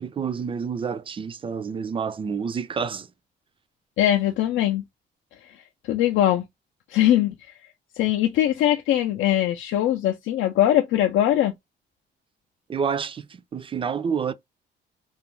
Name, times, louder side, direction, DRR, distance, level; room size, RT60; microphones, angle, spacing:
voice 1, 0.0-3.1 12.7-14.3, right 6 dB, 25° right, 0.3 m, -28 dB
voice 2, 4.0-4.8 5.6-6.4 6.9-7.3 7.9-11.5, left 12 dB, 80° left, 0.4 m, -21 dB
2.4 x 2.1 x 2.9 m
cardioid pair, 90°, 20 cm